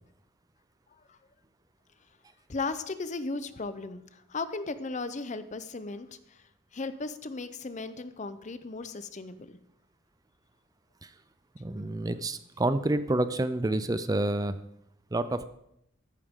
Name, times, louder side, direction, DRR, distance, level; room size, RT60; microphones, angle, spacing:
voice 1, 2.5-6.4 6.7-9.5, left 3 dB, 35° left, 12 dB, 0.7 m, -36 dB
voice 2, 11.6-14.5 15.1-15.4, right 2 dB, 20° right, 12 dB, 0.4 m, -28 dB
14.0 x 11.0 x 3.7 m, 0.79 s
head